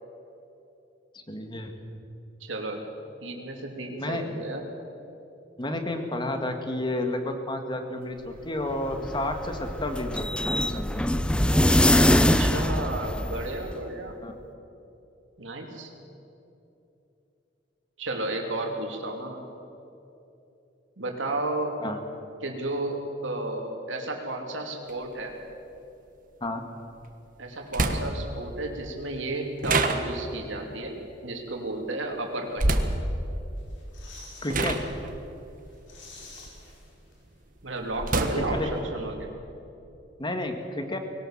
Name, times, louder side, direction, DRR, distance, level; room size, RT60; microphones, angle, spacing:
voice 1, 1.1-1.7 4.0-4.2 5.6-10.9 14.2-14.3 21.8-22.0 26.4-26.6 34.4-34.8 38.3-38.7 40.2-41.0, left 1 dB, 25° left, 5 dB, 1.8 m, -31 dB
voice 2, 2.4-2.8 3.2-4.6 12.1-14.1 15.4-15.9 18.0-19.4 21.0-21.8 22.4-25.4 27.4-32.6 37.6-39.3, right 2 dB, 90° right, 1 dB, 3.0 m, -32 dB
sound 1, 8.7-13.8, left 1 dB, 5° left, 0.6 m, -23 dB
sound 2, 24.9-25.0 27.0-27.1 27.7-28.4 29.6-30.5 32.6-33.1 33.9-34.1 34.5-36.9 37.3-38.8, right 2 dB, 45° right, 1.4 m, -27 dB
sound 3, 33.6-34.9 35.2-35.3 35.6-37.4 37.7-37.8, left 3 dB, 75° left, 4.3 m, -49 dB
21.0 x 18.0 x 7.4 m, 2.8 s
head